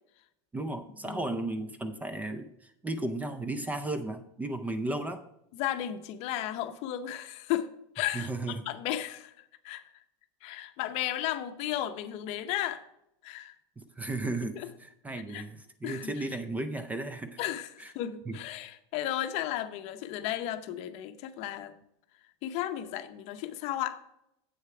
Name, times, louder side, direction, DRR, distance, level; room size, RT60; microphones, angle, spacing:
voice 1, 0.5-5.2 8.1-8.6 13.8-17.4 17.8-17.9 18.3-18.4, right 2 dB, 10° right, 9 dB, 0.5 m, -35 dB
voice 2, 1.0-1.4 5.5-7.7 7.9-10.0 10.4-12.8 13.2-13.5 14.6-14.7 15.3-15.4 15.8-16.1 17.4-21.8 22.4-24.0, left 12 dB, 45° left, 10 dB, 0.7 m, -34 dB
7.9 x 6.5 x 4.7 m, 0.81 s
supercardioid pair, 140°, 15 cm